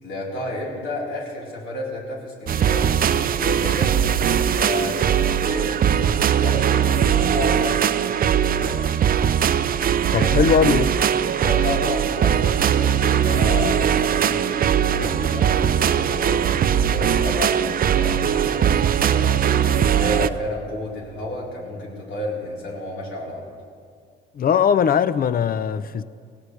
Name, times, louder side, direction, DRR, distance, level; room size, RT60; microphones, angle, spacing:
voice 1, 0.0-8.9 10.1-10.5 11.4-19.5 19.9-23.5, left 2 dB, 75° left, 4.1 m, -31 dB
sound 1, 2.5-20.3, right 9 dB, 45° right, 0.5 m, -20 dB
voice 2, 10.1-10.9 24.3-26.0, left 7 dB, 45° left, 0.6 m, -19 dB
17.5 x 17.5 x 3.3 m
cardioid pair, 90°, 20 cm